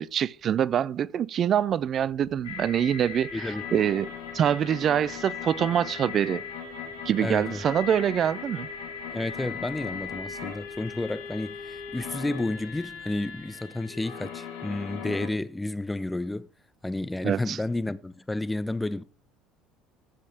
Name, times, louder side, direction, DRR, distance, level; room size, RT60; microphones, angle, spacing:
voice 1, 0.0-4.1 4.3-6.4 7.1-8.7 17.2-17.6, right 9 dB, 45° right, 0.4 m, -25 dB
sound 1, 1.7-13.5, left 5 dB, 35° left, 2.8 m, -55 dB
sound 2, 2.4-15.3, left 7 dB, 80° left, 2.1 m, -38 dB
voice 2, 3.3-3.6 7.2-7.6 9.1-16.5 16.8-19.0, left 2 dB, 10° left, 0.6 m, -31 dB
14.0 x 5.3 x 3.4 m
hypercardioid pair, 60°, 0 cm